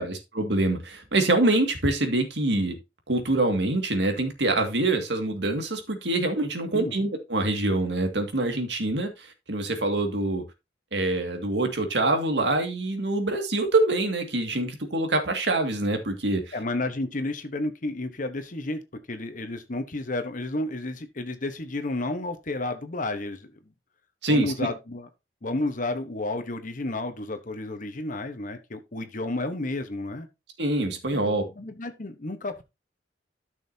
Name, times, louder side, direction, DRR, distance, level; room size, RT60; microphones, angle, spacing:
voice 1, 0.0-2.8 3.1-10.4 10.9-16.5 24.2-24.5 30.6-31.4, right 2 dB, 85° right, 2.1 m, -25 dB
voice 2, 16.5-23.7 24.3-25.1 25.4-30.3 31.1-32.6, left 2 dB, 50° left, 1.1 m, -31 dB
13.0 x 6.3 x 2.8 m
head